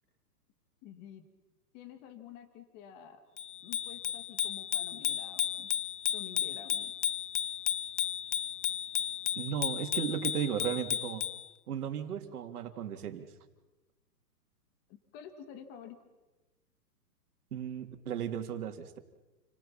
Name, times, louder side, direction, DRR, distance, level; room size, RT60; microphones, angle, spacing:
voice 1, 0.8-1.2 1.7-3.2 3.6-5.7 6.1-6.9 14.9-16.0, left 8 dB, 20° left, 8 dB, 2.0 m, -49 dB
Bicycle bell, 3.4-11.5, left 10 dB, 45° left, 1.0 m, -34 dB
voice 2, 9.4-11.2 11.7-13.3 17.5-19.0, right 9 dB, 60° right, 5 dB, 3.4 m, -35 dB
30.0 x 26.0 x 6.0 m, 1.1 s
hypercardioid pair, 165°, 50 cm